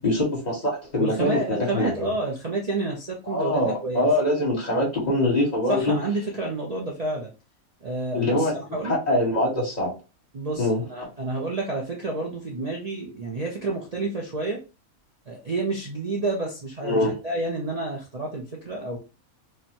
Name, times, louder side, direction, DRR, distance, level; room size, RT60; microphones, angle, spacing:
voice 1, 0.0-2.1 3.3-6.0 8.1-8.5 8.8-9.9 10.6-10.8 16.8-17.1, left 1 dB, 30° left, -4 dB, 1.4 m, -23 dB
voice 2, 1.0-4.1 4.7-4.9 5.7-7.3 7.8-9.0 10.3-14.6 15.3-19.0, right 2 dB, 35° right, -1 dB, 0.7 m, -29 dB
4.9 x 2.3 x 2.8 m, 0.31 s
omnidirectional pair, 1.5 m